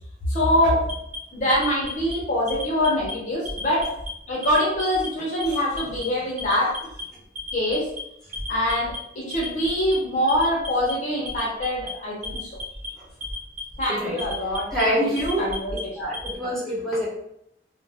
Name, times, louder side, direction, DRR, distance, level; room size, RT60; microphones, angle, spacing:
voice 1, 0.3-0.8 1.3-3.9 4.3-6.7 7.5-7.8 8.5-12.5 13.8-15.1 15.4-15.7, left 1 dB, 40° left, -5 dB, 0.8 m, -24 dB
Alarm, 0.8-2.1 2.5-3.1 3.4-4.1 4.4-5.1 5.4-6.0 6.4-7.0 7.4-8.0 8.3-9.0 9.3-9.9 10.3-10.9 11.3-11.9 12.2-12.9 13.2-13.8 14.2-14.8 15.2-16.3, equal, 40° right, 1.0 m, -35 dB
voice 2, 14.7-15.4 16.0-17.1, equal, ahead, -9 dB, 1.1 m, -25 dB
2.4 x 2.1 x 3.3 m, 0.77 s
head